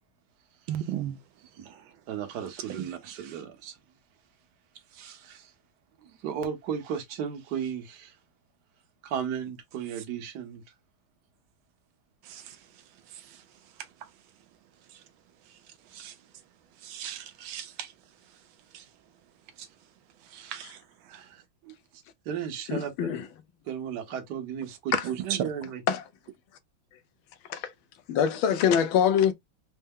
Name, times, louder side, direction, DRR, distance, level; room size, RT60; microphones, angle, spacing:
voice 1, 0.7-1.2 12.3-12.4 16.0-16.1 16.9-17.9 20.3-20.8, right 11 dB, 75° right, 1.3 m, -36 dB
voice 2, 2.1-3.8 4.9-5.5 6.0-8.2 9.0-10.6 20.4-20.5 21.1-23.1 23.6-25.8, right 8 dB, 60° right, 1.4 m, -35 dB
voice 3, 22.7-23.2 24.9-25.0 25.9-26.0 27.5-27.7 28.1-29.3, left 8 dB, 75° left, 1.4 m, -24 dB
4.3 x 2.1 x 3.6 m
omnidirectional pair, 2.3 m